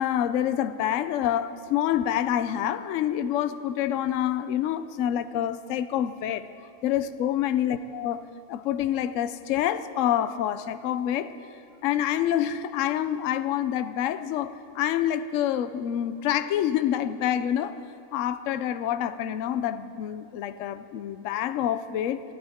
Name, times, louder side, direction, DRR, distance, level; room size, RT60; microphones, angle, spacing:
voice 1, 0.0-6.4 6.8-8.2 8.5-11.3 11.8-17.8 18.1-22.2, left 11 dB, 65° left, 12 dB, 0.9 m, -27 dB
27.5 x 11.0 x 3.6 m, 2.4 s
omnidirectional pair, 1.6 m